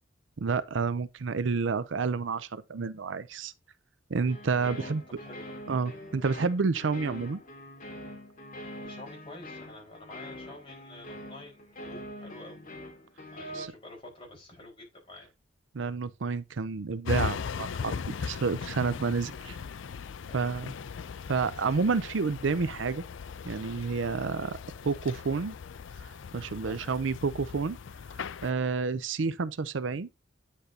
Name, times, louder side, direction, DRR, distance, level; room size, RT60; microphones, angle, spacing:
voice 1, 0.4-3.5 4.1-5.0 5.7-7.4 13.6-13.7 15.7-19.5 20.3-20.7 21.3-23.0 23.5-24.6 24.8-25.6 26.3-27.8 28.4-30.1, right 4 dB, 70° right, 0.5 m, -29 dB
sound 1, 4.2-13.7, left 1 dB, 45° left, 2.3 m, -44 dB
voice 2, 4.6-5.5 8.8-12.7 13.3-15.3 18.1-18.3 19.3-19.5 20.3-20.5 26.6-26.8 28.5-28.7, left 1 dB, 30° left, 4.8 m, -49 dB
sound 2, 17.0-28.5, left 6 dB, 75° left, 0.4 m, -38 dB
10.0 x 6.6 x 2.8 m
head